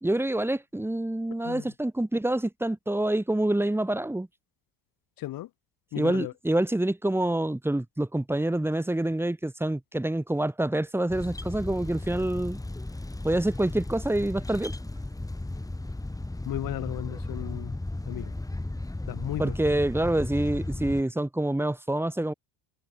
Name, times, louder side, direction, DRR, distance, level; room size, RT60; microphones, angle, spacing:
voice 1, 0.0-4.3 6.0-12.6 13.2-14.7 19.4-22.3, right 1 dB, 5° right, 3.9 m, -27 dB
voice 2, 5.2-5.5 5.9-6.3 16.4-17.7 18.1-18.3 19.1-19.5, left 15 dB, 65° left, 4.7 m, -35 dB
sound 1, 11.1-21.0, left 2 dB, 10° left, 7.6 m, -35 dB
cardioid pair, 105°, 37 cm